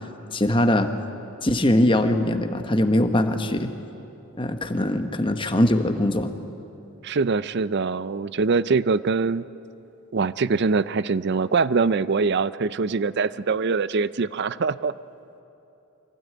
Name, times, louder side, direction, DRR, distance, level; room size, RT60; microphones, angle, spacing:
voice 1, 0.3-0.9 1.4-3.7 4.4-6.3, left 1 dB, 20° left, 7 dB, 1.1 m, -21 dB
voice 2, 7.0-9.4 10.1-14.9, right 4 dB, 50° right, 17 dB, 0.5 m, -23 dB
24.0 x 16.5 x 9.3 m, 2.9 s
head